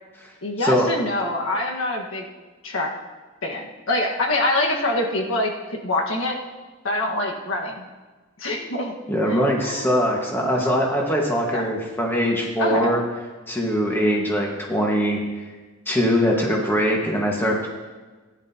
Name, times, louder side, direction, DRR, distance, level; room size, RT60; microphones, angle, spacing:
voice 1, 0.4-2.2 2.6-2.9 3.4-6.4 6.8-7.9 8.4-8.9 9.3-10.0 11.5-11.6 12.6-12.9, left 1 dB, 85° left, 0 dB, 1.5 m, -25 dB
voice 2, 9.1-13.0 13.5-15.2 15.9-17.7, equal, 10° left, -1 dB, 1.5 m, -22 dB
16.0 x 10.5 x 2.9 m, 1.3 s
head